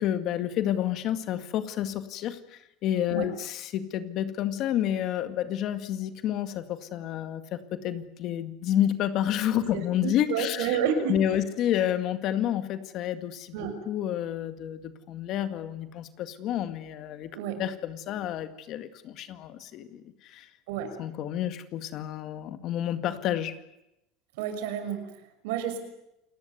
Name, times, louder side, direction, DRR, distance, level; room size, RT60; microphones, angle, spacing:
voice 1, 0.0-10.8 11.1-17.3 17.6-20.5 21.0-23.6, left 11 dB, 40° left, 10 dB, 2.0 m, -30 dB
voice 2, 9.7-11.2 13.5-13.7 17.3-17.6 20.7-20.9 24.4-25.8, right 8 dB, 75° right, 8 dB, 6.1 m, -30 dB
28.5 x 19.5 x 9.4 m, 0.87 s
supercardioid pair, 155°, 0 cm